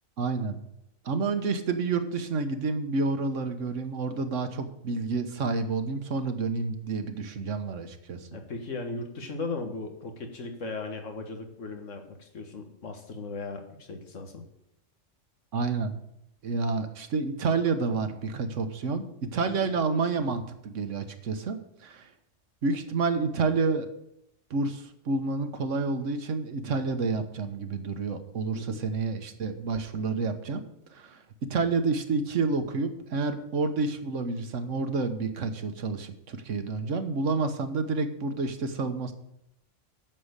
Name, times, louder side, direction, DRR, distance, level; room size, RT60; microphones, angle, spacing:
voice 1, 0.2-0.6 1.0-8.3 15.5-15.9 16.4-19.1 19.3-22.1 22.6-23.9 24.5-30.6 30.9-31.2 31.5-39.1, right 4 dB, 80° right, 8 dB, 1.4 m, -29 dB
voice 2, 8.3-14.5 19.5-19.7 28.5-28.9, left 3 dB, 80° left, 5 dB, 1.9 m, -37 dB
9.3 x 6.7 x 8.1 m, 0.80 s
omnidirectional pair, 1.3 m